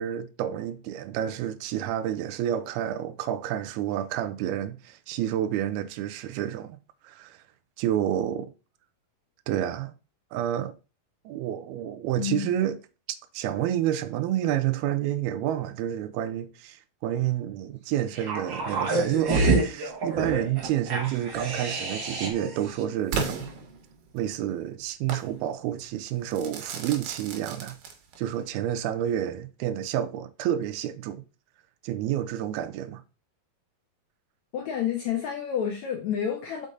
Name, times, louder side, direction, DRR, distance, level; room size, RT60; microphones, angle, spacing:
voice 1, 0.0-6.8 7.0-7.4 7.8-8.5 9.5-9.9 10.3-10.7 11.3-12.8 13.3-23.5 24.1-27.8 28.2-31.2 31.8-33.0, right 11 dB, 85° right, 2.6 m, -29 dB
voice 2, 12.2-12.5 34.5-36.7, left 8 dB, 75° left, 1.7 m, -29 dB
sound 1, 18.1-22.5 22.8-22.9, right 2 dB, 50° right, 1.5 m, -27 dB
Crackle / Fireworks, 23.1-24.3 25.1-25.3 26.3-28.3, right 4 dB, 70° right, 2.9 m, -34 dB
6.5 x 5.2 x 3.8 m
omnidirectional pair, 4.4 m